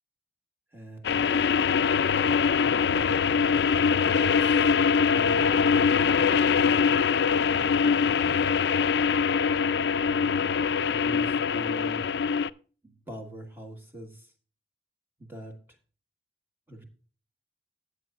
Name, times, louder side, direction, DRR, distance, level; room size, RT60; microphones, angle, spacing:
voice 1, 0.7-1.4 2.6-3.2 4.0-4.7 5.1-5.6 6.2-6.5 7.5-7.7 8.0-8.3 10.9-12.1 12.8-14.3 15.2-15.6 16.7-16.8, right 1 dB, 10° right, 4 dB, 1.5 m, -43 dB
sound 1, 1.0-12.5, left 6 dB, 70° left, 0.4 m, -23 dB
13.5 x 8.1 x 2.4 m, 0.38 s
head